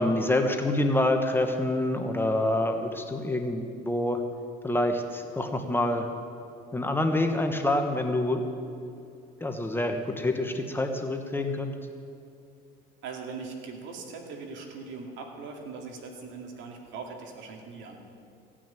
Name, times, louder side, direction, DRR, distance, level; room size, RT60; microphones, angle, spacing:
voice 1, 0.0-4.2 4.6-6.1 6.7-8.4 9.4-11.7, left 1 dB, 10° left, 4 dB, 1.2 m, -27 dB
voice 2, 13.0-18.0, right 4 dB, 70° right, 2 dB, 2.3 m, -40 dB
16.5 x 6.2 x 9.1 m, 2.6 s
supercardioid pair, 95°, 20 cm